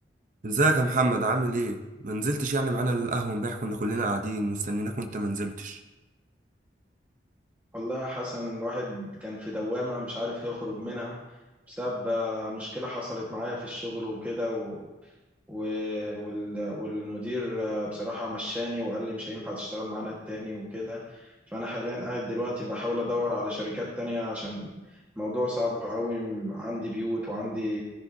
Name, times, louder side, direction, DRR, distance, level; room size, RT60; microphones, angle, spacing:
voice 1, 0.4-5.8, right 2 dB, 45° right, 5 dB, 0.7 m, -27 dB
voice 2, 7.7-11.2 11.7-14.8 15.5-24.7 25.2-27.8, left 1 dB, 10° right, -6 dB, 1.5 m, -32 dB
13.0 x 11.0 x 2.7 m, 1.1 s
head